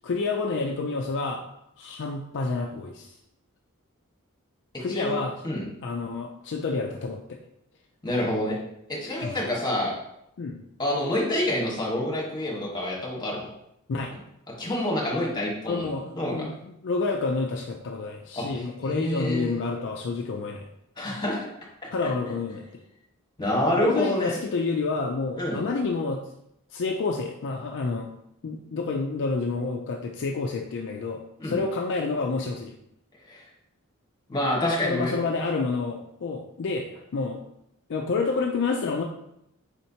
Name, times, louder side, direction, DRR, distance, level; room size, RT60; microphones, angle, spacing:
voice 1, 0.0-1.4 1.8-3.1 4.8-5.3 5.8-7.4 9.2-9.4 10.4-10.6 13.9-14.1 15.7-20.7 21.9-22.6 23.8-26.2 26.7-28.1 28.4-32.7 34.8-37.4 37.9-39.0, left 4 dB, 55° left, 1 dB, 0.4 m, -29 dB
voice 2, 8.0-8.6 8.9-10.0 10.8-13.5 14.6-15.9 16.2-16.3 18.3-19.6 21.0-21.5 22.0-22.1 23.4-24.4 25.4-25.6 31.4-31.6 33.3-33.4 34.3-35.1, left 1 dB, 20° left, -3 dB, 1.3 m, -27 dB
4.3 x 4.3 x 2.8 m, 0.79 s
head